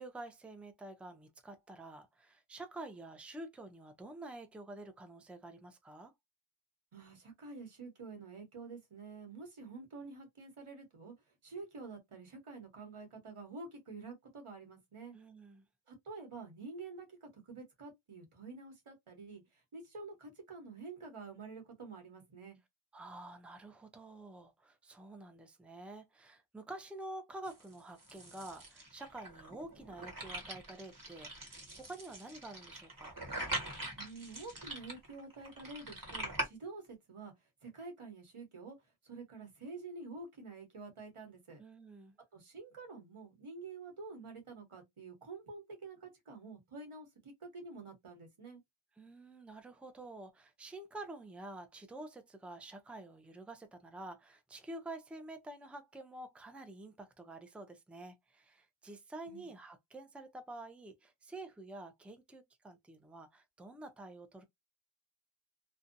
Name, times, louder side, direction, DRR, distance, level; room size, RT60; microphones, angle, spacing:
voice 1, 0.0-6.1 15.1-15.6 22.9-33.2 41.6-42.1 49.0-64.4, right 2 dB, 5° right, 0.5 m, -49 dB
voice 2, 6.9-11.1 11.4-15.1 15.9-19.4 19.7-22.6 34.0-37.3 37.6-38.8 39.0-41.6 42.3-48.6 59.3-59.5, right 3 dB, 80° right, 1.1 m, -48 dB
sound 1, 27.5-36.5, right 1 dB, 40° right, 1.1 m, -43 dB
2.6 x 2.2 x 2.5 m
wide cardioid pair, 45°, 50 cm